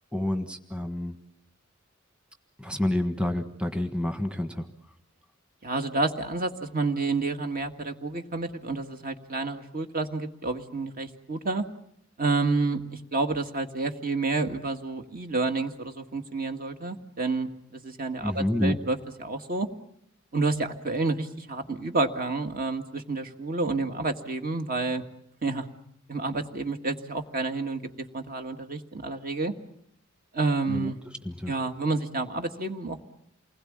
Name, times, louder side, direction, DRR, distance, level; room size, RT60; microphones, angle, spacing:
voice 1, 0.1-1.1 2.6-4.7 18.2-18.8 30.7-30.9 31.2-31.5, left 1 dB, 5° right, 7 dB, 1.5 m, -28 dB
voice 2, 5.6-11.6 12.2-19.7 20.3-25.0 25.4-25.7 26.1-27.8 28.1-29.5 30.3-31.0 31.5-33.0, right 3 dB, 45° right, 6 dB, 1.9 m, -29 dB
28.5 x 20.5 x 8.8 m, 0.73 s
head